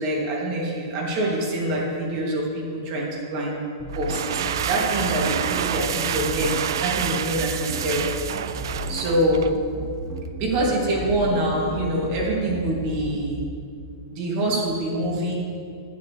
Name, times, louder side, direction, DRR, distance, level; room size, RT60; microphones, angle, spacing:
voice 1, 0.0-3.6 4.0-6.5 6.8-8.1 8.9-9.4 10.4-13.4 14.1-15.3, right 1 dB, 35° right, -3 dB, 2.6 m, -25 dB
sound 1, 3.8-13.4, right 1 dB, 20° right, 1.0 m, -35 dB
sound 2, 3.9-9.6, right 9 dB, 65° right, 0.4 m, -28 dB
12.0 x 9.2 x 3.3 m, 2.4 s
hypercardioid pair, 160°, 2 cm